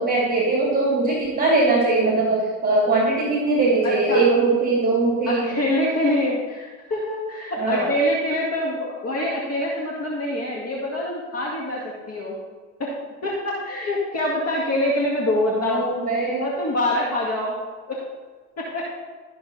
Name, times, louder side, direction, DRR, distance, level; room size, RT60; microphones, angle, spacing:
voice 1, 0.0-5.5 7.6-7.9 15.5-16.5, right 3 dB, 20° right, -3 dB, 2.9 m, -21 dB
voice 2, 3.8-4.4 5.3-12.4 12.8-12.9 13.2-15.9 16.4-17.6 17.9-18.0 18.6-18.9, left 1 dB, 35° left, -3 dB, 2.1 m, -25 dB
13.5 x 6.8 x 4.1 m, 1.4 s
supercardioid pair, 85°, 41 cm